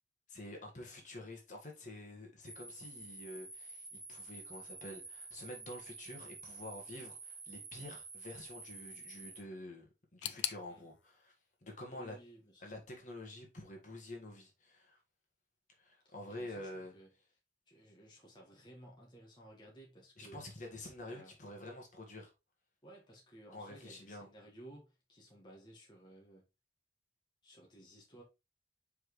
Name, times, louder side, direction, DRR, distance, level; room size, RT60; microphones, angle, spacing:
voice 1, 0.3-11.3 11.6-12.2 12.6-15.0 15.8-16.9 20.2-22.3 23.5-24.3, left 1 dB, 45° left, 1.7 m, -48 dB
sound 1, 2.4-9.4, right 3 dB, 15° right, 2.7 m, -50 dB
sound 2, 10.2-13.1 13.3-14.2 14.4-14.5 15.4-15.5, left 13 dB, 85° left, 0.5 m, -45 dB
voice 2, 11.9-12.6 16.0-17.1 17.7-20.4 21.0-21.4 22.8-26.4 27.4-28.2, right 1 dB, 25° left, 1.6 m, -57 dB
6.2 x 4.9 x 3.1 m
head